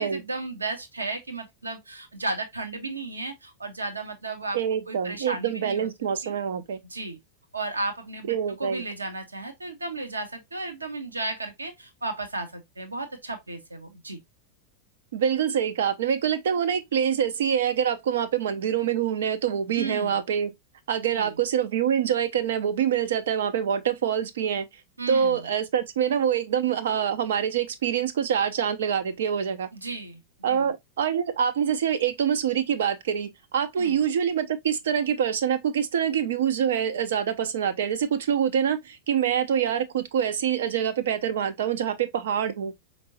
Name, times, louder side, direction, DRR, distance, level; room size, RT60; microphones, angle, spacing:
voice 1, 0.0-4.6 4.9-5.9 6.2-6.3 6.8-7.2 7.5-14.2 19.7-20.2 21.1-21.4 25.0-25.5 29.7-30.7 33.8-34.0, right 2 dB, 80° right, 1.1 m, -34 dB
voice 2, 4.5-6.8 8.3-8.8 15.1-20.5 20.9-24.6 25.1-29.7 30.4-42.7, right 8 dB, 60° right, 0.7 m, -25 dB
5.2 x 3.3 x 2.7 m
figure-of-eight pair, 90°, 0 cm